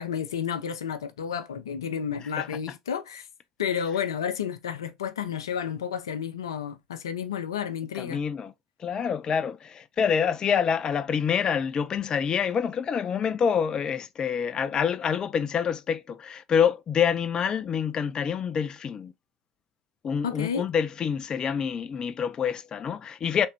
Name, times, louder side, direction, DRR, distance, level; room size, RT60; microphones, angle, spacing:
voice 1, 0.0-3.3 3.6-8.2 20.2-20.7, left 8 dB, 75° left, 0.6 m, -31 dB
voice 2, 7.9-8.5 8.8-19.1 20.0-23.5, left 7 dB, 30° left, 0.3 m, -27 dB
3.4 x 3.1 x 2.9 m
figure-of-eight pair, 70°, 2 cm